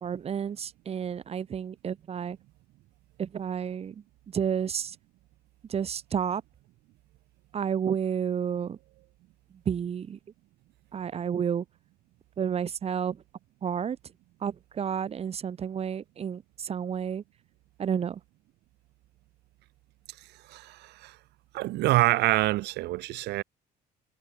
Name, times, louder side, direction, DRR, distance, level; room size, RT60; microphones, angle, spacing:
voice 1, 0.0-2.4 3.2-5.0 5.7-6.4 7.5-8.8 9.7-10.2 10.9-11.6 12.4-13.2 13.6-14.0 14.4-17.2 17.8-18.2, right 8 dB, 35° right, 0.9 m, -31 dB
voice 2, 20.5-21.2 21.5-23.4, right 18 dB, 80° right, 1.0 m, -26 dB
cardioid pair, 110°, 17 cm